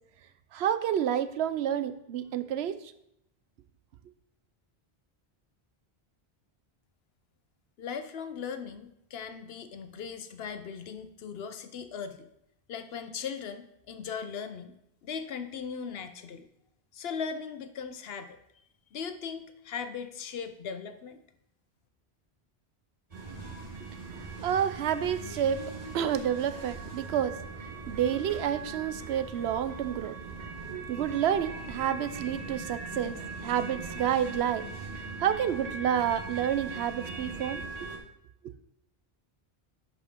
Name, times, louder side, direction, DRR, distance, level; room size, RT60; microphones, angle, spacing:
voice 1, 0.5-2.8 23.8-23.9 24.4-25.6 25.9-27.3 27.9-30.1 30.9-34.7 35.2-37.9, right 9 dB, 85° right, 11 dB, 0.8 m, -29 dB
voice 2, 7.8-12.3 12.7-14.8 15.0-16.5 16.9-18.4 18.9-21.2, left 6 dB, 75° left, 9 dB, 0.9 m, -38 dB
sound 1, 23.1-38.0, right 3 dB, 40° right, 1.5 m, -40 dB
11.0 x 5.1 x 3.6 m, 0.79 s
omnidirectional pair, 1.1 m